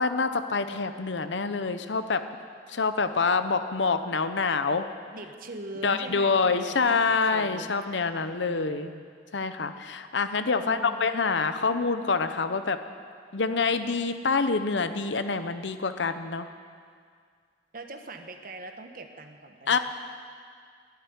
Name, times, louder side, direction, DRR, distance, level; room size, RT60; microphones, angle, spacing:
voice 1, 0.0-2.2 2.7-4.9 5.8-8.9 9.3-12.8 13.3-16.5 19.7-19.8, left 4 dB, 75° left, 10 dB, 0.8 m, -26 dB
voice 2, 5.1-7.8 8.2-9.0 10.6-11.1 17.7-19.8, right 2 dB, 50° right, 5 dB, 1.3 m, -42 dB
13.0 x 11.5 x 9.8 m, 2.1 s
head